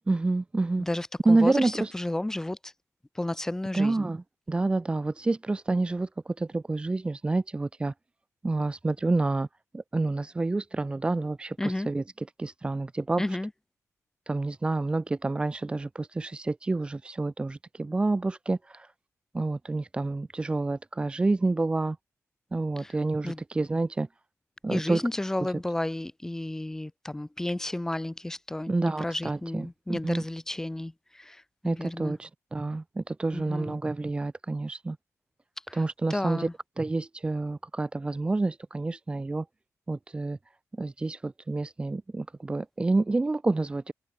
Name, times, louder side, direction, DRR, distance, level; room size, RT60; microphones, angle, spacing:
voice 1, 0.1-0.9 1.2-1.9 3.7-6.1 6.4-7.9 8.4-9.5 9.7-11.6 11.9-12.0 12.4-13.2 14.3-18.9 19.3-22.0 22.5-24.1 24.6-25.0 28.7-30.2 31.6-35.0 35.7-36.5 36.8-39.4 39.9-40.4 40.8-43.9, right 2 dB, 20° right, 1.1 m, -28 dB
voice 2, 0.8-2.7 3.1-4.1 11.6-11.9 13.2-13.5 22.8-23.0 23.2-23.4 24.7-32.2 33.3-33.8 35.7-36.5, left 1 dB, 10° left, 1.5 m, -32 dB
wide cardioid pair, 180°, 6 cm